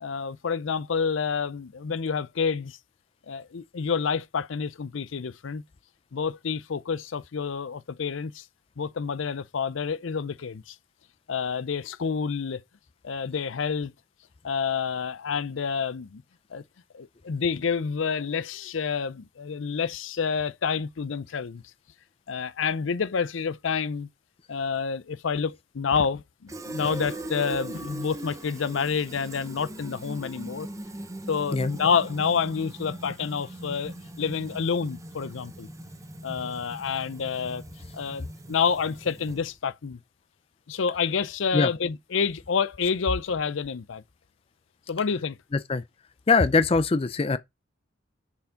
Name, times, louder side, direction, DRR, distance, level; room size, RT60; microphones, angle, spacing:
voice 1, 0.0-2.8 3.3-5.6 6.1-8.4 8.8-10.8 11.3-12.6 13.0-13.9 14.4-16.2 16.5-16.6 16.9-21.6 22.3-24.1 24.5-30.7 31.3-35.7 36.2-37.6 37.9-40.0 40.7-44.0 44.9-45.4, left 6 dB, 75° left, 0.5 m, -28 dB
Fill (with liquid), 26.5-39.6, right 1 dB, 15° right, 0.7 m, -40 dB
voice 2, 46.3-47.4, left 4 dB, 30° left, 0.4 m, -22 dB
7.0 x 4.8 x 5.1 m
head